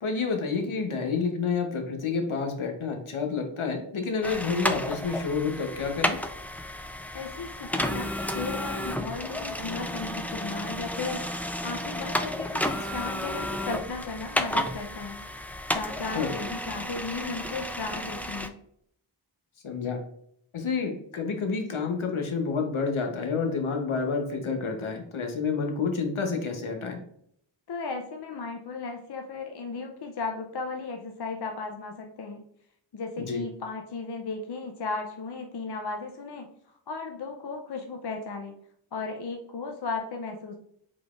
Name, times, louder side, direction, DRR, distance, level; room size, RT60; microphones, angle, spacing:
voice 1, 0.0-6.2 16.1-16.3 19.6-20.0 20.5-27.0 33.2-33.4, left 5 dB, 75° left, 4 dB, 0.9 m, -29 dB
sound 1, 4.2-18.5, left 1 dB, 5° left, 0.3 m, -32 dB
voice 2, 7.1-15.2 15.7-18.5 27.7-32.4 32.9-36.5 36.9-38.5 38.9-40.6, left 4 dB, 55° left, 3 dB, 0.6 m, -35 dB
4.9 x 3.9 x 2.4 m, 0.68 s
wide cardioid pair, 65°, 50 cm